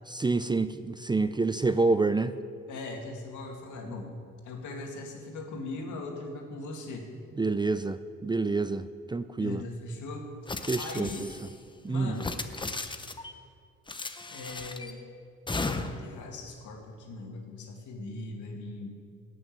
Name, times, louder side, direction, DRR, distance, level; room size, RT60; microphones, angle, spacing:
voice 1, 0.1-2.4 7.4-9.6 10.7-11.3 11.8-12.1, right 3 dB, 15° right, 12 dB, 0.4 m, -28 dB
voice 2, 2.7-4.1 4.4-7.1 9.4-11.3 11.9-12.3 14.3-15.0 15.6-18.9, left 3 dB, 80° left, 2 dB, 2.3 m, -39 dB
sound 1, 10.5-11.5 12.1-13.3 13.9-14.9 15.5-16.1, left 3 dB, 15° left, 0.8 m, -35 dB
14.0 x 6.3 x 9.2 m, 2.3 s
cardioid pair, 90°, 30 cm